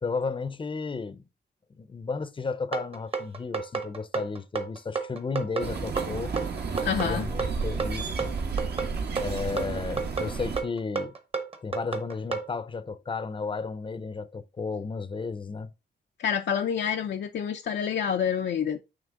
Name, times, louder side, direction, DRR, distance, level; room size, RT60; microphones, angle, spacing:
voice 1, 0.0-1.3 1.8-6.3 7.0-8.3 9.2-11.1 11.6-15.7, left 4 dB, 30° left, 0.6 m, -33 dB
sound 1, 2.7-12.5, right 5 dB, 35° right, 1.0 m, -31 dB
sound 2, 5.6-10.6, right 4 dB, 65° right, 1.3 m, -32 dB
voice 2, 6.8-7.3 16.2-18.8, left 8 dB, 85° left, 0.5 m, -27 dB
9.0 x 3.3 x 3.7 m
wide cardioid pair, 135°, 18 cm